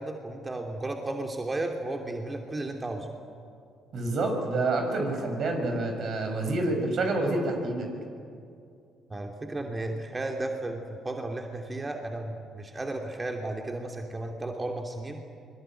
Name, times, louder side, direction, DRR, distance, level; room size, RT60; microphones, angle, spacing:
voice 1, 0.0-3.1 9.1-15.2, right 2 dB, 25° right, 3 dB, 2.8 m, -34 dB
voice 2, 3.9-7.9, right 2 dB, 55° right, 4 dB, 6.6 m, -28 dB
24.5 x 21.5 x 9.2 m, 2.5 s
hypercardioid pair, 50°, 0 cm